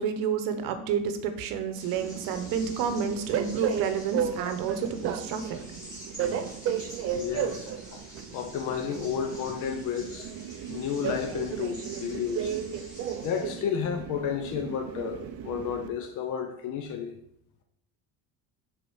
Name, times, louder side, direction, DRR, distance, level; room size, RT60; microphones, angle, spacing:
voice 1, 0.0-5.6, right 7 dB, 75° right, 8 dB, 1.0 m, -30 dB
sound 1, 1.7-13.4, equal, 10° left, 2.6 m, -47 dB
Train, 1.9-15.9, right 8 dB, 45° right, 0.6 m, -34 dB
voice 2, 7.0-8.0 8.3-10.4 10.7-12.5 13.2-17.1, left 7 dB, 60° left, 5 dB, 0.9 m, -32 dB
6.8 x 3.9 x 6.3 m, 0.71 s
cardioid pair, 175°, 33 cm